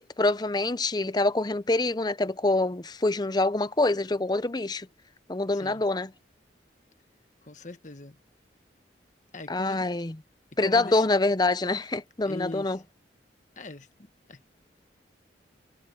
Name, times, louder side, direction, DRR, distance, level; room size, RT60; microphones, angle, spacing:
voice 1, 0.2-4.9 5.3-6.1 9.5-10.2 10.6-12.8, left 2 dB, 20° left, 0.6 m, -25 dB
voice 2, 5.5-5.8 7.4-8.2 9.3-9.9 10.6-11.0 12.2-12.8 13.6-13.9 14.3-14.4, left 2 dB, 40° left, 1.3 m, -41 dB
head